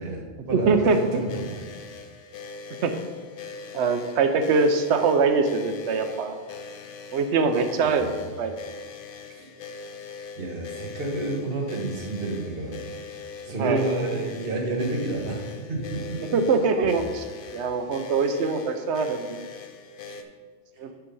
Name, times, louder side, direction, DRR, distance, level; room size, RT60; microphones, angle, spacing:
voice 1, 0.0-1.5 7.8-8.1 9.3-9.5 10.4-12.8 13.4-15.4 15.7-16.3 20.1-20.2, right 2 dB, 55° right, 0 dB, 1.5 m, -30 dB
voice 2, 0.5-1.2 2.8-2.9 3.7-6.4 7.1-8.5 13.6-13.8 16.3-17.2 17.5-19.5 20.8-20.9, right 4 dB, 75° right, 8 dB, 1.0 m, -23 dB
sound 1, 0.9-20.2, left 5 dB, 55° left, 0.7 m, -41 dB
8.0 x 4.9 x 5.5 m, 1.5 s
omnidirectional pair, 1.2 m